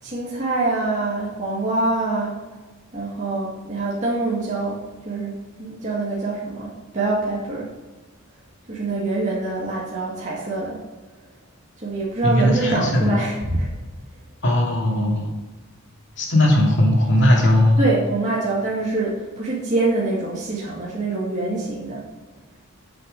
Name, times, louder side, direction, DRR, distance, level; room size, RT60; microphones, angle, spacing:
voice 1, 0.0-2.4 2.9-7.7 8.7-10.8 11.8-13.7 17.8-22.1, right 2 dB, 35° right, -7 dB, 1.9 m, -25 dB
voice 2, 12.2-13.1 14.4-15.3 16.2-17.8, left 1 dB, 60° left, -1 dB, 2.6 m, -18 dB
9.7 x 6.6 x 5.3 m, 1.2 s
head